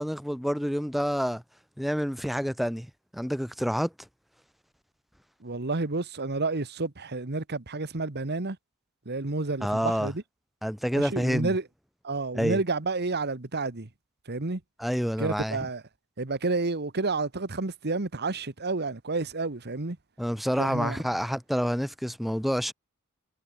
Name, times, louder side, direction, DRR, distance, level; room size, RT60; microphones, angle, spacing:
voice 1, 0.0-1.4 1.8-2.9 3.1-3.9 9.6-10.1 10.6-11.5 12.3-12.6 14.8-15.7 20.2-22.7, equal, ahead, 1.1 m, -28 dB
voice 2, 5.4-8.6 9.0-10.2 10.9-11.6 12.0-13.9 14.3-14.6 15.2-15.8 16.2-20.0 20.6-21.0, right 3 dB, 50° right, 1.4 m, -30 dB
head